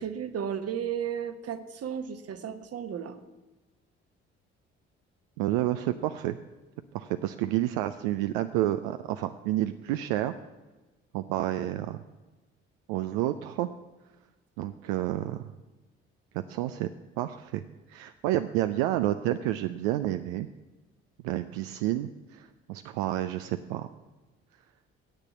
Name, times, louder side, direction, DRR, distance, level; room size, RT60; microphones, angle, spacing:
voice 1, 0.0-3.2, right 8 dB, 50° right, 11 dB, 1.1 m, -34 dB
voice 2, 5.4-6.4 6.9-10.3 11.1-12.0 12.9-13.7 14.6-15.5 16.3-16.9 17.2-17.6 17.9-20.5 21.2-23.9, right 14 dB, 80° right, 9 dB, 0.5 m, -29 dB
8.2 x 6.8 x 8.4 m, 1.1 s
hypercardioid pair, 50°, 30 cm